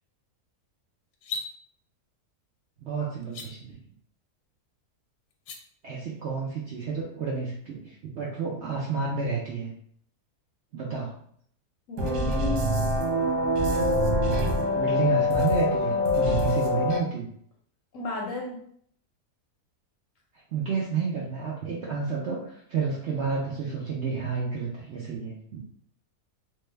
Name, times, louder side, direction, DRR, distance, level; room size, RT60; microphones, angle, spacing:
sound 1, 1.1-1.5 3.2-3.5 5.3-5.6, left 3 dB, 85° left, 1.2 m, -35 dB
voice 1, 2.8-3.8 5.8-9.7 10.7-11.1 14.7-17.3 20.5-25.6, right 5 dB, 70° right, -4 dB, 0.6 m, -30 dB
voice 2, 11.9-12.7 17.9-18.6, left 3 dB, 65° left, -1 dB, 0.8 m, -33 dB
sound 2, 12.0-17.0, left 1 dB, 90° right, 1.2 m, -24 dB
3.2 x 2.1 x 3.2 m, 0.64 s
omnidirectional pair, 1.7 m